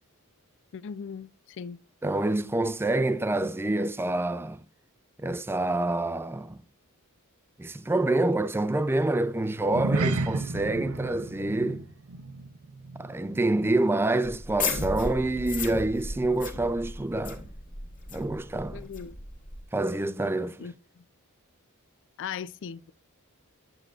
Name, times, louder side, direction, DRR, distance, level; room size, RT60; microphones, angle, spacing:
voice 1, 0.7-1.8 18.7-19.2 20.6-20.7 22.2-22.9, left 7 dB, 55° left, 0.4 m, -38 dB
voice 2, 2.0-4.6 5.2-6.6 7.6-11.8 13.0-17.4 18.1-18.9 19.7-20.7, right 2 dB, 10° right, 0.4 m, -27 dB
sound 1, 9.6-14.3 14.5-14.8 15.3-15.4, right 3 dB, 75° right, 0.7 m, -33 dB
sound 2, 14.3-19.6, left 3 dB, 35° left, 1.6 m, -35 dB
9.9 x 7.8 x 2.4 m
head